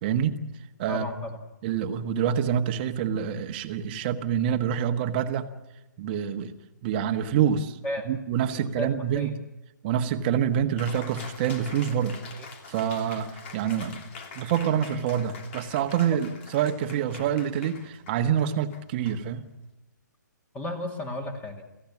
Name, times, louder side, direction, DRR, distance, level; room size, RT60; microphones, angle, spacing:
voice 1, 0.0-0.4 0.8-1.1 1.6-5.5 6.0-6.5 6.8-7.8 8.1-9.3 9.8-12.2 12.7-19.5, right 9 dB, 30° right, 7 dB, 1.5 m, -26 dB
voice 2, 0.9-1.4 7.8-8.1 8.5-9.3 12.4-12.5 16.1-16.2 20.5-21.7, left 1 dB, 15° left, 5 dB, 2.5 m, -34 dB
Cheering, 10.8-19.7, left 4 dB, 40° left, 3.1 m, -45 dB
28.5 x 15.5 x 7.4 m, 1.0 s
figure-of-eight pair, 135°, 10 cm